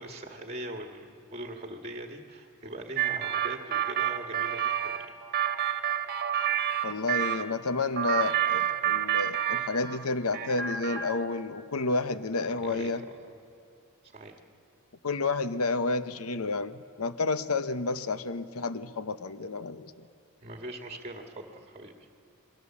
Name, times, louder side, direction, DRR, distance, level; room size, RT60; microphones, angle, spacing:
voice 1, 0.0-5.0 12.6-12.9 14.1-14.4 20.4-21.9, right 1 dB, 30° right, 4 dB, 1.7 m, -41 dB
sound 1, 3.0-7.4 8.0-10.0 10.3-11.3, right 10 dB, 45° right, 1.5 m, -29 dB
voice 2, 6.8-13.0 15.0-19.9, left 3 dB, 80° left, 12 dB, 0.9 m, -30 dB
28.5 x 21.5 x 7.3 m, 2.8 s
head